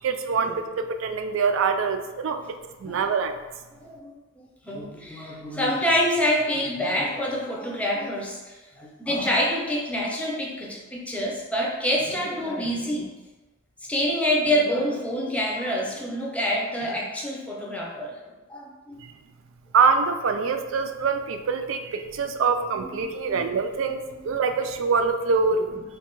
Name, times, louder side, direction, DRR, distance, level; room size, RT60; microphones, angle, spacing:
voice 1, 0.0-2.4 2.8-3.3 19.7-25.6, right 5 dB, 70° right, 7 dB, 0.4 m, -24 dB
voice 2, 3.8-4.2 4.6-13.1 13.8-18.1 18.5-19.0 22.8-23.4 24.1-24.2 25.5-25.8, equal, 5° left, -3 dB, 0.6 m, -27 dB
3.4 x 2.3 x 4.4 m, 1.1 s
head